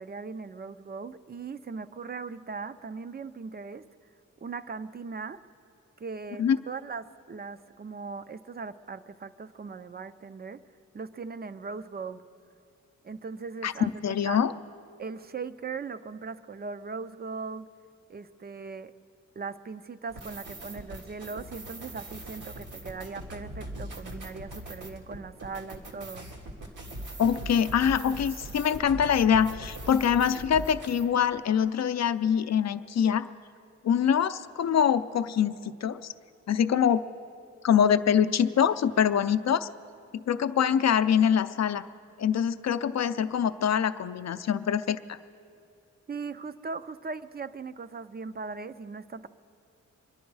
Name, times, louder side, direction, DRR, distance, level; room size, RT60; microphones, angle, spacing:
voice 1, 0.0-3.8 4.4-5.4 6.0-10.6 10.9-12.2 13.0-14.4 15.0-17.7 18.1-18.9 19.4-26.3 46.1-49.3, right 4 dB, 30° right, 12 dB, 0.4 m, -39 dB
voice 2, 14.0-14.5 27.2-33.2 33.8-35.6 35.8-36.1 36.5-37.0 37.6-39.7 40.1-41.8 42.2-45.2, left 8 dB, 60° left, 12 dB, 0.5 m, -24 dB
sound 1, 20.1-31.0, right 1 dB, 85° right, 1.9 m, -41 dB
25.0 x 11.0 x 4.7 m, 2.5 s
wide cardioid pair, 145°, 30 cm